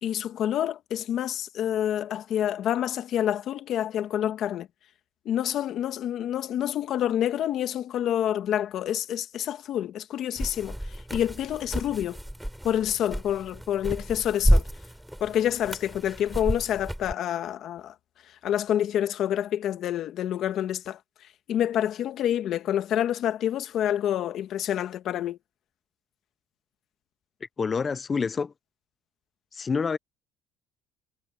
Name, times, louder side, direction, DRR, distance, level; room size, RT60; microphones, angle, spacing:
voice 1, 0.0-4.7 5.2-10.7 11.1-12.2 12.6-14.6 15.2-17.9 18.4-21.0 21.5-25.4, left 11 dB, 55° left, 1.6 m, -27 dB
sound 1, 10.4-17.1, equal, ahead, 3.8 m, -29 dB
voice 2, 27.6-28.5 29.5-30.0, left 5 dB, 25° left, 0.6 m, -27 dB
cardioid pair, 125°, 0 cm